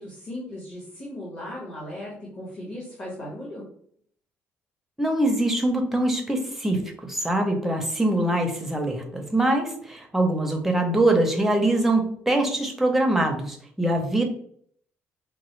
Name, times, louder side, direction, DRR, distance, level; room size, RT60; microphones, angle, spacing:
voice 1, 0.0-3.7, left 1 dB, 30° left, -6 dB, 1.5 m, -37 dB
voice 2, 5.0-14.2, right 1 dB, 5° right, 2 dB, 0.6 m, -23 dB
5.1 x 2.2 x 3.1 m, 0.63 s
cardioid pair, 145°, 5 cm